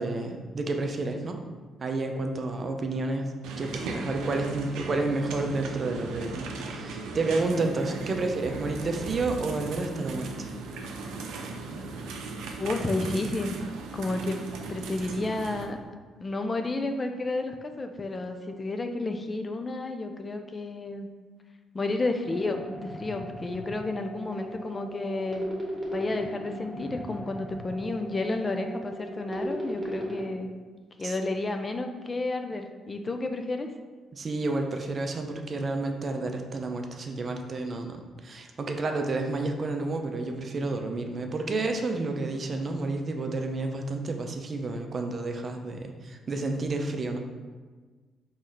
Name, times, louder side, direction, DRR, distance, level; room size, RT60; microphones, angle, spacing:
voice 1, 0.0-1.4 1.8-10.5 31.0-31.1 34.1-47.2, right 3 dB, 40° right, 4 dB, 0.5 m, -30 dB
sound 1, 3.4-15.6, right 3 dB, 90° right, 0.5 m, -37 dB
voice 2, 12.6-13.6 13.9-14.4 14.7-15.8 16.2-21.1 21.7-25.4 25.9-30.5 31.0-33.7, left 2 dB, 30° left, 6 dB, 0.4 m, -31 dB
sound 2, 22.2-30.2, equal, 5° right, 1.2 m, -37 dB
4.2 x 3.1 x 3.9 m, 1.4 s
cardioid pair, 90°, 0 cm